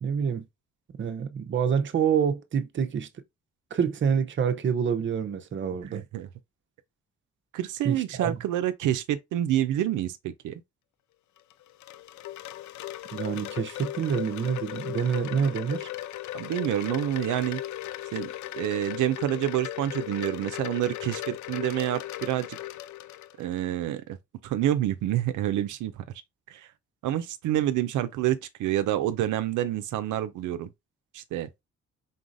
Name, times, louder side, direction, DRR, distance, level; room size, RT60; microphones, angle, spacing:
voice 1, 0.0-0.4 1.0-3.1 3.7-6.0 7.8-8.4 13.1-15.9, right 7 dB, 40° right, 0.6 m, -27 dB
voice 2, 5.9-6.3 7.5-10.6 15.4-15.5 16.3-17.6 18.1-22.6 23.4-24.2 24.4-26.0 26.5-26.7 27.0-30.7 31.1-31.5, right 12 dB, 80° right, 0.5 m, -28 dB
Wind chime, 11.4-23.6, left 14 dB, 70° left, 0.4 m, -37 dB
3.9 x 3.9 x 2.5 m
cardioid pair, 90°, 30 cm